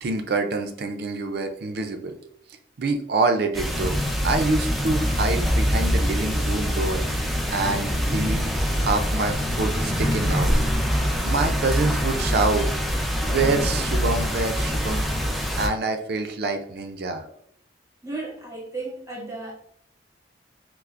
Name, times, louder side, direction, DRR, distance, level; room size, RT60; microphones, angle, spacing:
voice 1, 0.0-2.2 2.8-4.0 4.2-8.4 8.8-10.6 11.1-12.7 13.2-15.1 15.6-17.2, right 3 dB, 60° right, 6 dB, 0.5 m, -26 dB
sound 1, 3.5-15.7, equal, ahead, 0.5 m, -24 dB
voice 2, 18.0-19.5, right 3 dB, 20° right, -2 dB, 1.1 m, -34 dB
5.6 x 2.0 x 2.4 m, 0.64 s
head